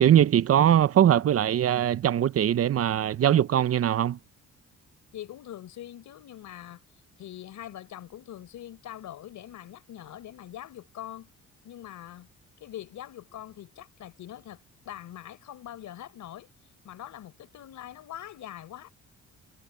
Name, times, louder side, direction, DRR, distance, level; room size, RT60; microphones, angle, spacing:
voice 1, 0.0-4.2, right 10 dB, 50° right, 0.7 m, -21 dB
voice 2, 5.1-6.8 7.2-11.3 11.6-12.3 12.6-16.5 16.8-18.9, left 12 dB, 75° left, 4.9 m, -43 dB
cardioid pair, 90°, 30 cm